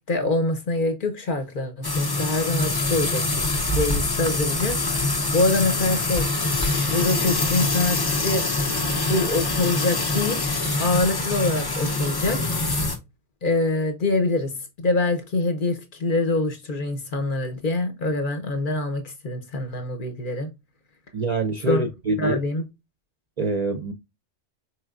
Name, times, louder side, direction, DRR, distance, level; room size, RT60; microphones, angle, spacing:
voice 1, 0.1-6.3 6.9-8.5 9.0-10.4 10.8-12.4 13.4-20.5 21.7-21.8 22.2-22.6, left 2 dB, 50° left, 0.8 m, -25 dB
sound 1, 1.8-13.0, left 2 dB, 30° left, 0.4 m, -24 dB
voice 2, 21.1-22.4 23.4-23.9, right 2 dB, 50° right, 0.5 m, -25 dB
4.5 x 3.2 x 2.3 m
omnidirectional pair, 1.2 m